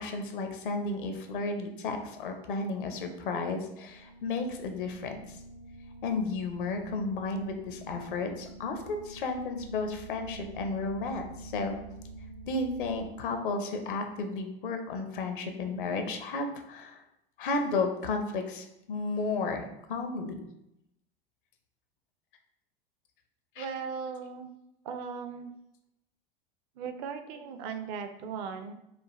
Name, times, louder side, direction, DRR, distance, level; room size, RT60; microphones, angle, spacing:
voice 1, 0.0-5.4 6.0-11.7 12.5-17.0 17.4-20.4 23.6-23.7, left 3 dB, 60° left, 5 dB, 0.7 m, -33 dB
sound 1, 3.9-13.1, right 2 dB, 80° right, 1.4 m, -47 dB
voice 2, 23.6-24.5 24.8-25.5 26.8-28.7, right 6 dB, 45° right, 7 dB, 0.5 m, -38 dB
5.0 x 2.2 x 3.0 m, 0.84 s
figure-of-eight pair, 85°, 29 cm